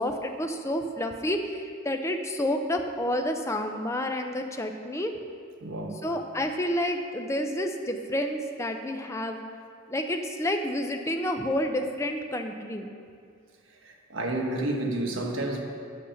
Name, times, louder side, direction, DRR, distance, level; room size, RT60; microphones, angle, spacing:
voice 1, 0.0-5.1 6.0-9.4 9.9-12.9, left 1 dB, 15° left, 5 dB, 0.5 m, -29 dB
voice 2, 5.6-6.0 13.8-15.6, right 1 dB, 70° right, 1 dB, 1.2 m, -30 dB
8.6 x 7.2 x 5.7 m, 2.2 s
head